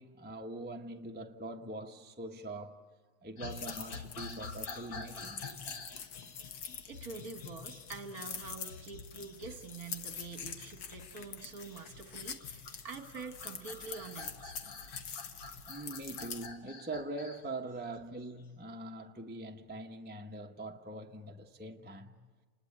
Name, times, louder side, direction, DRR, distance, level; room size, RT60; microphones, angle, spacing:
voice 1, 0.0-2.8 3.2-5.5 15.7-22.2, right 2 dB, 10° right, 0.5 m, -43 dB
sound 1, 3.4-18.5, left 4 dB, 45° left, 2.0 m, -49 dB
sound 2, 3.5-16.5, left 6 dB, 65° left, 2.0 m, -46 dB
voice 2, 6.9-14.6, right 5 dB, 45° right, 1.9 m, -46 dB
29.0 x 20.5 x 8.8 m
omnidirectional pair, 2.3 m